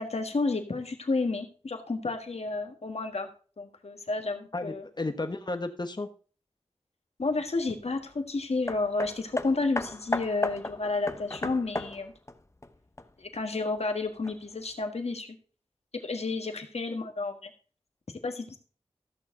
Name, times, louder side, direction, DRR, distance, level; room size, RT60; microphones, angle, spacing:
voice 1, 0.0-3.3 3.6-4.8 7.2-12.1 13.2-15.3 16.0-17.5 18.2-18.6, left 3 dB, 75° left, 5 dB, 1.6 m, -31 dB
voice 2, 4.5-6.1, left 2 dB, 40° left, 7 dB, 1.4 m, -33 dB
Hammer, 8.7-13.4 14.2-14.3, left 2 dB, 25° left, 0.9 m, -35 dB
14.5 x 6.7 x 3.8 m, 0.39 s
wide cardioid pair, 60°, 11 cm